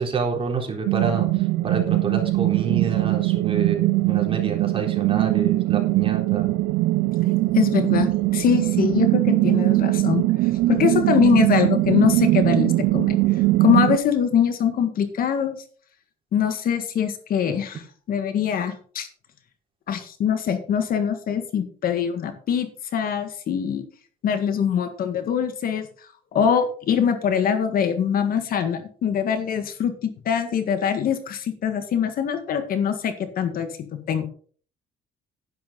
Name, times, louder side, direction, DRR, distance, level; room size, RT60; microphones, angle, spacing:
voice 1, 0.0-6.5, right 5 dB, 30° right, 1 dB, 3.8 m, -28 dB
sound 1, 0.9-14.0, right 18 dB, 80° right, 0.5 m, -21 dB
voice 2, 7.5-10.2 10.7-13.2 13.6-15.6 16.3-17.8 18.1-19.1 19.9-23.8 24.2-25.9 26.3-34.2, left 8 dB, 60° left, 9 dB, 1.8 m, -23 dB
10.5 x 10.5 x 3.9 m, 0.43 s
cardioid pair, 110°, 17 cm